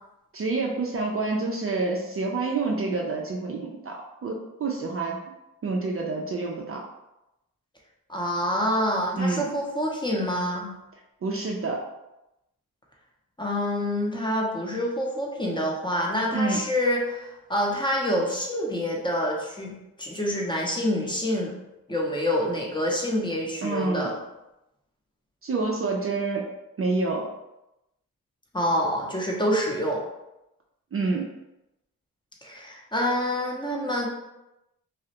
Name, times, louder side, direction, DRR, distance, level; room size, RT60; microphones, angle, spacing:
voice 1, 0.3-5.2 5.6-6.8 9.2-9.5 11.2-11.9 16.3-16.6 23.6-24.1 25.4-26.5 26.8-27.3 30.9-31.3, right 3 dB, 40° right, 0 dB, 0.4 m, -28 dB
voice 2, 8.1-10.7 13.4-21.5 21.9-24.1 28.5-30.0 32.4-34.1, equal, 15° left, -2 dB, 0.6 m, -27 dB
2.3 x 2.0 x 2.8 m, 0.92 s
cardioid pair, 50°, 35 cm